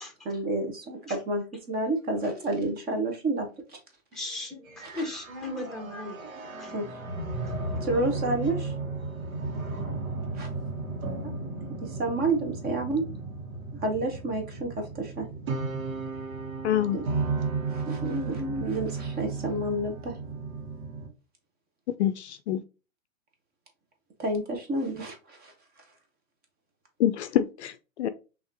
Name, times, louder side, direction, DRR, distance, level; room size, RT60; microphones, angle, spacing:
voice 1, 0.2-3.5 4.8-5.0 6.7-6.9 7.8-8.7 10.4-10.5 11.8-13.0 13.8-15.3 16.9-17.0 17.7-20.1 24.2-25.5, right 2 dB, 20° right, 1.3 m, -29 dB
voice 2, 4.1-6.7 7.4-7.5, left 2 dB, ahead, 1.2 m, -37 dB
sound 1, 4.7-21.1, right 3 dB, 80° right, 1.6 m, -34 dB
voice 3, 16.6-17.0 22.0-22.6 27.0-27.7 28.0-28.1, left 11 dB, 55° left, 0.5 m, -25 dB
5.4 x 3.0 x 2.8 m
hypercardioid pair, 125°, 41 cm